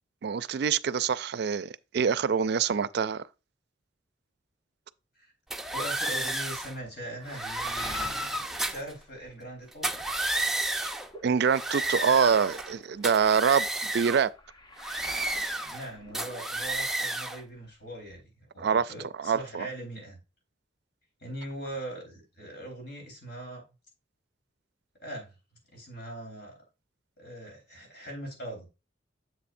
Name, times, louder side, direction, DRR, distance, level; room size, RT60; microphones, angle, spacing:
voice 1, 0.2-3.2 11.2-13.7 13.9-14.3 18.6-18.9 19.2-19.7, right 6 dB, 60° right, 0.4 m, -25 dB
sound 1, 5.5-6.7 7.3-8.9 9.7-11.1 11.4-12.7 13.0-14.3 14.8-15.9 16.1-17.4, right 1 dB, ahead, 0.5 m, -32 dB
voice 2, 5.7-10.0 15.7-20.2 21.2-23.6 25.0-25.4 25.7-26.6 27.2-28.7, right 1 dB, 60° left, 4.0 m, -41 dB
Waves surf, 6.6-9.7 10.1-17.0 17.3-18.2, left 1 dB, 25° left, 0.9 m, -50 dB
7.5 x 7.0 x 2.6 m
head